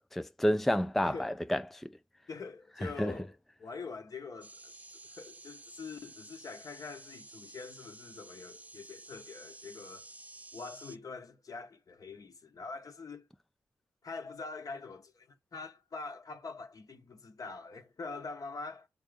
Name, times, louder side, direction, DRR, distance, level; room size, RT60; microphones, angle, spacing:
voice 1, 0.0-1.9 2.8-3.1, equal, 5° left, 0.3 m, -30 dB
voice 2, 1.0-1.4 2.3-3.3 3.6-10.1 10.5-13.3 14.0-18.9, left 4 dB, 55° left, 1.0 m, -44 dB
sound 1, 4.4-11.0, right 2 dB, 20° right, 0.8 m, -52 dB
5.2 x 3.9 x 5.0 m
supercardioid pair, 40°, 7 cm